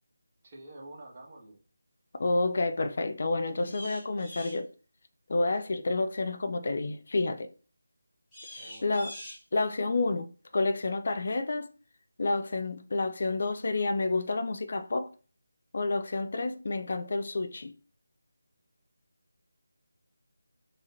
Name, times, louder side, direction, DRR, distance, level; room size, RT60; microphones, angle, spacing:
voice 1, 0.4-1.6 8.5-8.9, right 1 dB, 30° right, 1.4 m, -48 dB
voice 2, 2.2-4.7 5.3-7.5 8.5-9.2 9.5-10.3 10.5-11.7 12.2-15.1 15.7-17.8, left 3 dB, 50° left, 0.4 m, -29 dB
sound 1, 3.6-4.6 8.3-9.4, left 1 dB, 5° left, 1.7 m, -44 dB
4.8 x 2.8 x 2.6 m
figure-of-eight pair, 160°, 0 cm